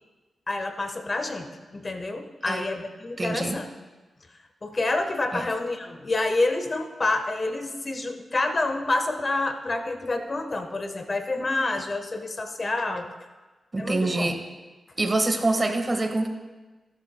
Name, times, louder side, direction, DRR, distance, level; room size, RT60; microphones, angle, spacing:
voice 1, 0.5-3.7 4.6-13.1 13.8-14.3, left 2 dB, 45° left, 6 dB, 1.2 m, -28 dB
voice 2, 3.2-3.6 5.3-5.5 13.7-14.4 15.0-16.3, right 2 dB, 35° right, 5 dB, 1.5 m, -25 dB
17.0 x 11.5 x 2.2 m, 1.3 s
cardioid pair, 50°, 0 cm